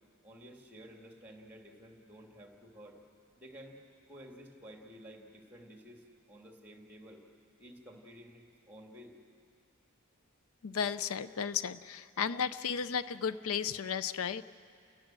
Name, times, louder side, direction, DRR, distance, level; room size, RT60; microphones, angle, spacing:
voice 1, 0.2-3.0 3.4-3.8 4.1-7.2 7.6-9.2, equal, 10° right, 1 dB, 2.4 m, -52 dB
voice 2, 10.6-14.4, left 7 dB, 85° left, 14 dB, 0.5 m, -34 dB
29.5 x 17.5 x 7.6 m, 2.5 s
head